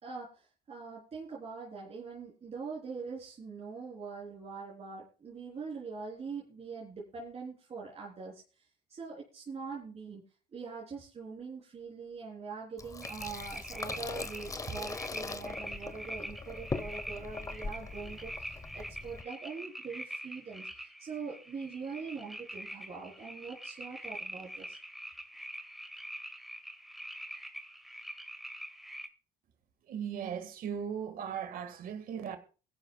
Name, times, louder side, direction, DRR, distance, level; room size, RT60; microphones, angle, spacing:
voice 1, 0.0-10.2 10.5-24.8, right 5 dB, 40° right, 3.8 m, -43 dB
Water tap faucet / Sink (filling or washing), 12.8-19.2, left 3 dB, 20° left, 1.0 m, -41 dB
sound 1, 13.0-29.1, equal, ahead, 1.6 m, -45 dB
voice 2, 29.9-32.4, right 8 dB, 60° right, 1.8 m, -37 dB
21.0 x 11.0 x 2.3 m
cardioid pair, 110°, 17 cm